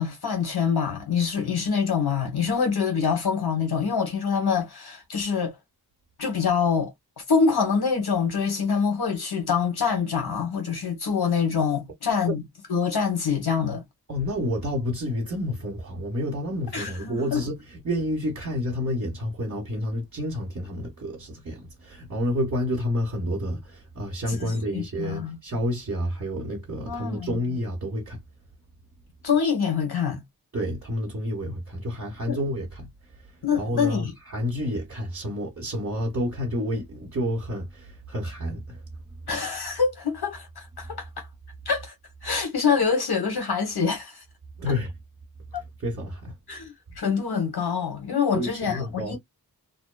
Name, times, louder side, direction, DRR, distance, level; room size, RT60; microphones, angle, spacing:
voice 1, 0.0-5.6 6.2-6.9 7.3-12.4 12.7-13.8 16.7-17.4 24.3-25.4 26.8-27.4 29.2-30.2 32.3-32.4 33.4-34.1 39.3-41.3 41.7-41.9 42.2-44.2 45.5-45.6 46.5-49.2, left 6 dB, 85° left, 1.0 m, -25 dB
voice 2, 14.1-28.2 30.5-32.9 33.6-38.8 44.6-44.9 45.8-46.3 48.3-49.2, left 1 dB, 50° right, 1.1 m, -29 dB
2.6 x 2.2 x 2.2 m
wide cardioid pair, 70°, 37 cm